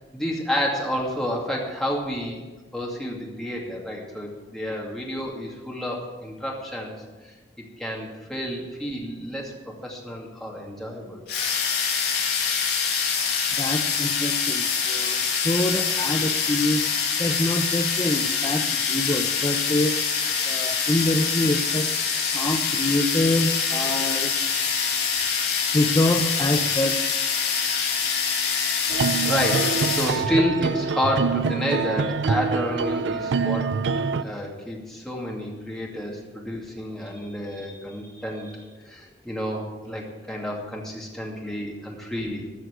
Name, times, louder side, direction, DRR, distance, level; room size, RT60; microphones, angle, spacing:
voice 1, 0.1-2.4 2.7-6.9 7.6-11.2 28.9-33.7 34.2-38.5 38.9-42.5, equal, ahead, -3 dB, 2.4 m, -30 dB
sound 1, 11.3-30.2, left 6 dB, 60° left, 2.6 m, -25 dB
voice 2, 13.5-16.9 17.2-20.0 20.4-21.9 22.3-24.3 25.7-27.0 37.0-38.6, left 1 dB, 20° left, 4 dB, 0.7 m, -26 dB
sound 2, 28.9-34.2, right 5 dB, 70° right, 0.4 m, -25 dB
14.0 x 6.3 x 8.0 m, 1.2 s
head